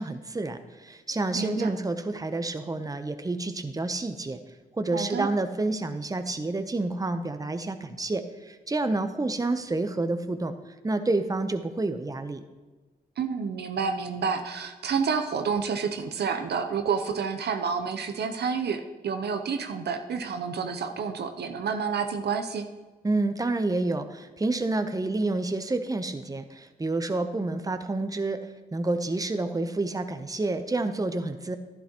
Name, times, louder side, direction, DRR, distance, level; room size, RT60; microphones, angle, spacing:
voice 1, 0.0-4.4 4.8-10.5 10.8-12.4 23.0-28.4 28.7-31.6, right 2 dB, 20° right, 9 dB, 0.8 m, -29 dB
voice 2, 1.3-1.7 4.9-5.3 13.2-22.7, right 6 dB, 70° right, 6 dB, 0.7 m, -29 dB
11.0 x 10.0 x 3.0 m, 1.3 s
supercardioid pair, 45°, 18 cm